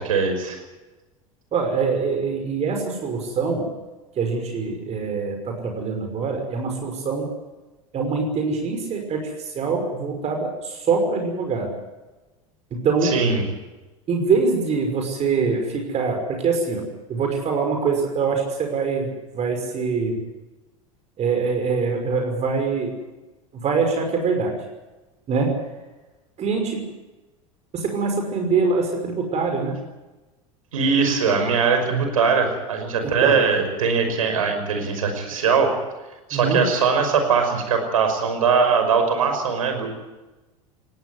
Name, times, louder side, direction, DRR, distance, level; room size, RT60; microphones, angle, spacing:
voice 1, 0.1-0.6 13.0-13.4 30.7-35.7 36.3-39.9, right 5 dB, 80° right, 6 dB, 5.6 m, -21 dB
voice 2, 1.5-3.7 4.2-7.3 7.9-11.7 12.7-13.1 14.1-20.2 21.2-22.9 23.5-24.6 25.3-25.6 26.4-26.9 27.7-29.8 33.0-33.4 36.3-36.6, right 4 dB, 40° right, 4 dB, 5.7 m, -24 dB
20.0 x 17.5 x 9.5 m, 1.1 s
hypercardioid pair, 80°, 18 cm